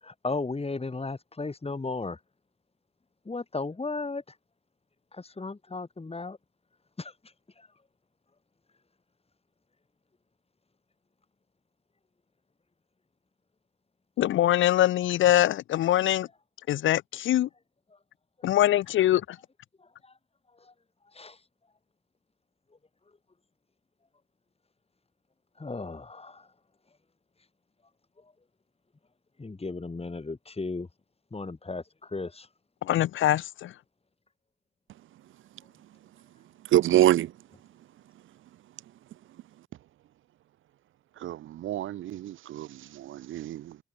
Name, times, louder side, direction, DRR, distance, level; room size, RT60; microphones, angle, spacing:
voice 1, 0.0-2.2 3.3-4.4 5.1-6.4 7.0-7.7 17.9-18.0 18.4-18.5 19.8-20.2 20.5-20.7 21.0-21.4 23.1-23.2 25.6-26.5 28.2-28.3 29.4-30.9 31.3-32.5, left 3 dB, 30° left, 3.5 m, -36 dB
voice 2, 14.2-16.3 16.7-17.5 18.4-19.4 32.8-33.7, left 13 dB, 70° left, 0.9 m, -23 dB
voice 3, 36.6-37.4 41.2-43.8, right 13 dB, 75° right, 1.3 m, -26 dB
hypercardioid pair, 45°, 21 cm